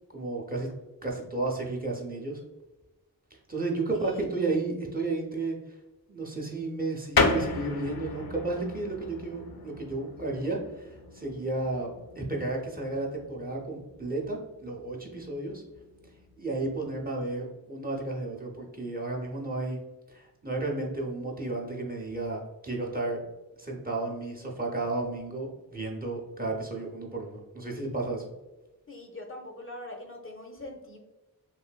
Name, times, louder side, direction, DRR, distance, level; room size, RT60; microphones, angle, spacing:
voice 1, 0.1-0.7 1.0-2.4 3.3-5.8 6.1-11.9 12.1-15.6 16.4-19.8 20.1-23.2 23.6-28.3, right 2 dB, 25° right, -2 dB, 0.7 m, -33 dB
sound 1, 7.1-17.3, left 3 dB, 75° left, 0.5 m, -34 dB
voice 2, 28.9-31.0, left 1 dB, 35° left, 1 dB, 0.6 m, -42 dB
3.1 x 2.6 x 2.2 m, 1.1 s
cardioid pair, 45°, 37 cm